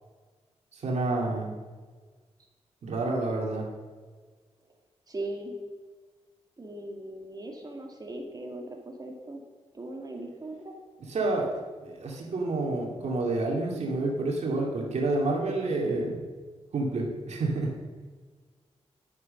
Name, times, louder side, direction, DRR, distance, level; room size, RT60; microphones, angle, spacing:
voice 1, 0.7-1.6 2.8-3.7 11.1-11.5 11.8-16.2 16.7-17.7, right 2 dB, 75° right, -1 dB, 2.4 m, -29 dB
voice 2, 5.1-5.6 6.6-9.4 9.7-10.7, right 1 dB, 35° right, 1 dB, 2.2 m, -39 dB
11.5 x 9.5 x 5.3 m, 1.5 s
wide cardioid pair, 105°, 12 cm